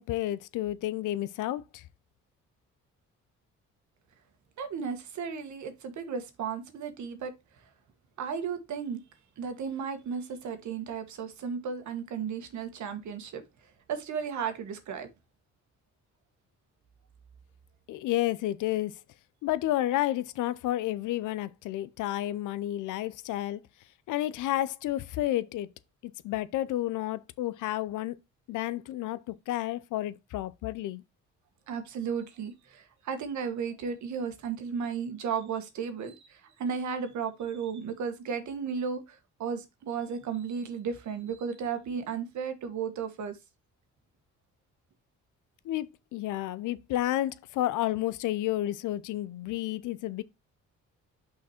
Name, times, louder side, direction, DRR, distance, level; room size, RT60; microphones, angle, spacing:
voice 1, 0.0-1.8 17.9-18.9 19.4-23.6 24.1-25.7 26.0-28.2 28.5-31.0 45.6-45.9 46.1-50.2, left 14 dB, 80° left, 0.6 m, -31 dB
voice 2, 4.6-7.6 8.2-9.0 9.4-15.1 31.7-43.4, right 6 dB, 70° right, 1.5 m, -34 dB
5.9 x 4.9 x 4.3 m
cardioid pair, 90°, 30 cm